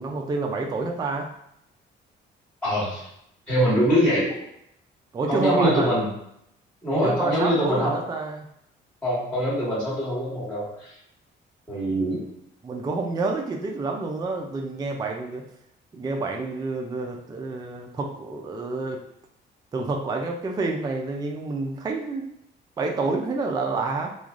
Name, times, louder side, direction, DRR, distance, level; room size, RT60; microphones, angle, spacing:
voice 1, 0.0-1.3 5.1-5.9 7.0-8.4 12.6-15.4 15.9-19.0 19.7-22.3 22.8-24.1, right 3 dB, 20° right, 2 dB, 0.4 m, -28 dB
voice 2, 2.6-3.1 3.5-4.3 5.3-6.1 6.8-7.9 9.0-11.0 11.7-12.2, equal, 10° left, -8 dB, 1.5 m, -23 dB
3.1 x 2.3 x 2.4 m, 0.75 s
cardioid pair, 90°, 20 cm